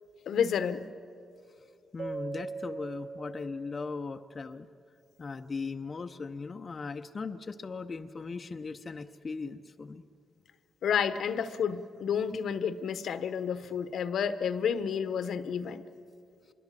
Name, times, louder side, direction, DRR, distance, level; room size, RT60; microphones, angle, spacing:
voice 1, 0.3-0.9 10.8-15.8, left 7 dB, 70° left, 12 dB, 1.0 m, -30 dB
voice 2, 1.9-4.7 5.2-10.0, left 4 dB, 35° left, 5 dB, 0.7 m, -38 dB
Keyboard (musical), 2.0-4.4, right 4 dB, 65° right, 0.6 m, -41 dB
25.5 x 22.0 x 7.6 m, 2.5 s
cardioid pair, 95°, 0 cm